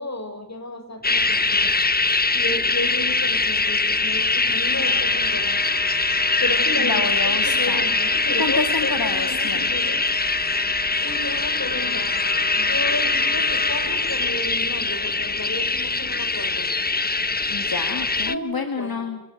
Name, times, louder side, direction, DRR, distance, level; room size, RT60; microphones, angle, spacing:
voice 1, 0.0-1.7 2.3-5.6 6.4-7.0 7.4-10.0 11.0-12.1 12.6-16.7 18.3-19.2, left 1 dB, 50° left, 6 dB, 5.9 m, -32 dB
sound 1, 1.0-18.3, left 3 dB, 25° left, 0.8 m, -22 dB
Wind instrument woodwind instrument, 4.6-13.9, equal, 30° right, 3.7 m, -37 dB
voice 2, 6.8-7.8 8.4-9.8 17.5-19.2, left 4 dB, 85° left, 6 dB, 2.2 m, -28 dB
26.5 x 14.0 x 9.3 m, 0.84 s
wide cardioid pair, 50°, 35 cm